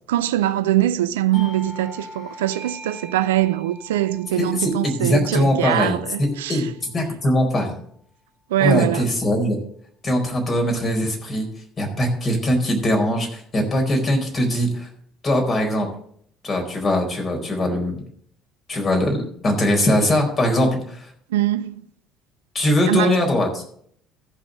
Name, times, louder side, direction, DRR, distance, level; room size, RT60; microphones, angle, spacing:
voice 1, 0.1-6.7 8.5-9.1 21.3-21.9 22.9-23.2, right 13 dB, 80° right, 0.5 m, -22 dB
Doorbell, 1.3-6.6, left 1 dB, 60° left, 2.9 m, -41 dB
voice 2, 4.4-7.7 8.6-9.6 10.0-11.5 11.8-14.9 15.2-15.9 16.4-18.0 18.7-21.0 22.5-23.6, left 1 dB, 35° left, 4.4 m, -21 dB
14.5 x 5.9 x 6.4 m
hypercardioid pair, 60°, 0 cm